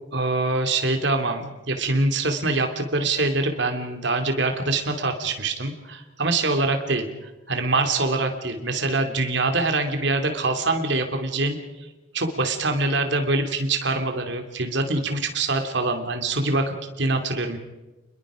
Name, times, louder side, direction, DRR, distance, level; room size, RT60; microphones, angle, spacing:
voice 1, 0.1-7.1 7.5-11.6 12.1-17.6, right 2 dB, 60° right, 5 dB, 2.8 m, -24 dB
29.0 x 21.5 x 5.0 m, 1.1 s
head